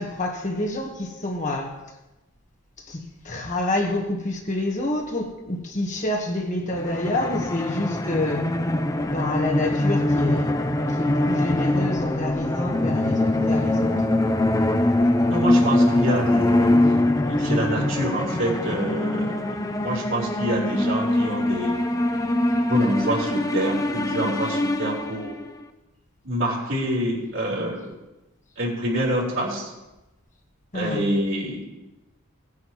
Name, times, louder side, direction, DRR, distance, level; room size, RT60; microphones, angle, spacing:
voice 1, 0.0-1.8 2.8-8.4 9.0-10.5 10.9-14.1 30.7-31.1, left 1 dB, 35° left, 1.4 m, -28 dB
sound 1, 6.7-25.5, left 1 dB, 15° left, 0.5 m, -23 dB
voice 2, 15.3-16.8 17.2-21.8 22.7-25.3 26.2-27.9 28.6-29.7 30.7-31.7, right 1 dB, 60° right, 4.1 m, -27 dB
18.0 x 9.7 x 3.1 m
head